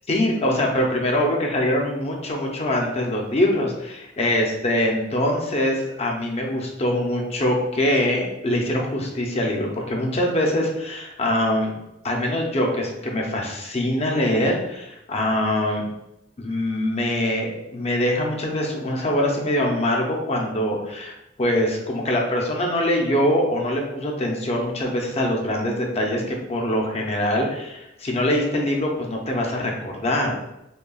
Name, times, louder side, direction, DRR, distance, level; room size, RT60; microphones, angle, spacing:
voice 1, 0.1-11.7 12.0-15.9 16.4-30.3, left 1 dB, 35° left, 0 dB, 0.6 m, -23 dB
5.3 x 2.3 x 2.3 m, 0.88 s
head